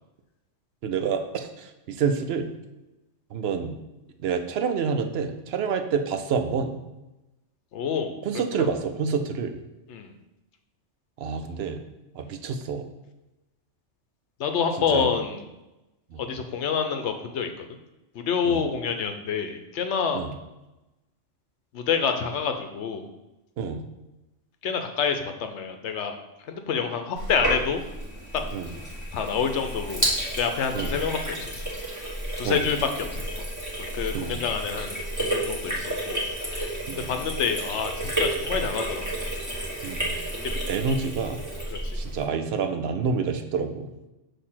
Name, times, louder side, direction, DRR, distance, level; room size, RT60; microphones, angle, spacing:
voice 1, 0.8-2.5 3.3-3.7 4.2-6.7 8.2-9.6 11.2-11.8 12.2-12.9 14.9-15.1 16.1-16.2 18.4-18.6 20.1-20.3 23.6-23.8 28.5-28.7 30.7-30.9 32.4-32.7 34.1-34.4 36.9-37.0 39.8-40.1 40.7-41.4 41.9-43.9, right 6 dB, 65° right, 7 dB, 0.7 m, -28 dB
voice 2, 7.7-8.1 8.5-8.7 9.9-10.1 14.4-15.4 16.2-17.7 18.1-20.3 21.7-23.1 24.6-26.2 26.5-27.8 29.1-30.1 30.4-31.6 32.4-33.2 33.8-36.2 37.0-39.1 40.4-40.6 41.7-42.0, left 6 dB, 70° left, 6 dB, 0.9 m, -27 dB
Sink (filling or washing), 27.2-42.2, right 1 dB, 15° right, 1.3 m, -31 dB
6.4 x 2.8 x 5.6 m, 1.0 s
omnidirectional pair, 1.3 m